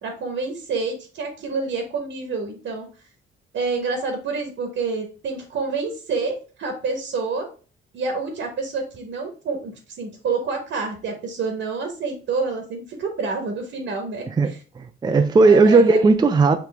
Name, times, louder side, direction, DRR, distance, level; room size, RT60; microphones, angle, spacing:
voice 1, 0.0-2.9 3.5-7.5 7.9-14.6 15.5-16.0, right 4 dB, 75° right, 1.2 m, -28 dB
voice 2, 14.4-16.6, right 3 dB, 20° right, 0.4 m, -16 dB
5.0 x 2.9 x 3.3 m
cardioid pair, 90°, 20 cm